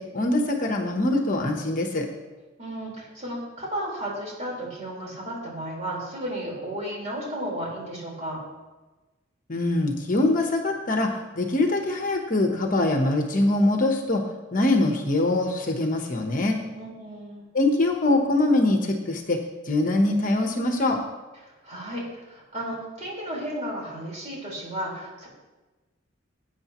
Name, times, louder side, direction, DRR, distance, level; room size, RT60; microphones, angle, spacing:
voice 1, 0.0-2.1 9.5-11.1 11.3-14.2 14.5-16.6 17.5-21.0, left 2 dB, 40° left, 3 dB, 1.1 m, -23 dB
voice 2, 2.6-8.4 16.7-17.4 21.6-25.3, right 1 dB, 35° right, -4 dB, 4.6 m, -33 dB
19.0 x 9.2 x 3.1 m, 1.2 s
head